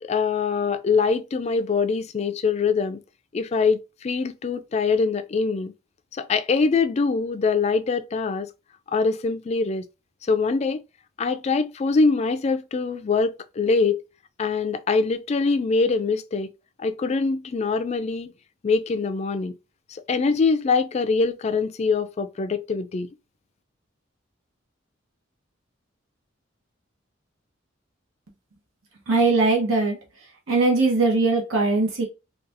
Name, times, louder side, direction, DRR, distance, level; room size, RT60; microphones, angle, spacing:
voice 1, 0.0-3.0 3.3-5.7 6.1-8.5 8.9-9.8 10.3-10.8 11.2-14.0 14.4-16.5 16.8-18.3 18.6-19.5 19.9-23.1, left 4 dB, 35° left, 0.3 m, -23 dB
voice 2, 29.1-30.0 30.5-32.0, right 3 dB, 85° right, 0.9 m, -20 dB
3.9 x 2.3 x 2.6 m
head